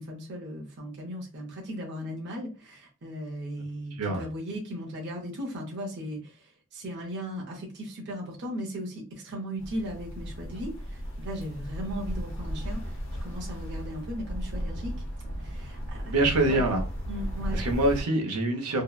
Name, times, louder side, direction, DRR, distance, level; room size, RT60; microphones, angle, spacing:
voice 1, 0.0-13.0 13.2-14.9 15.4-16.2 16.4-16.6 17.1-17.6, equal, 50° right, 0.6 m, -37 dB
sound 1, 9.6-18.0, equal, 55° left, 0.7 m, -35 dB
voice 2, 16.1-16.8 17.5-18.8, right 2 dB, 90° right, 0.7 m, -25 dB
2.7 x 2.1 x 2.3 m
head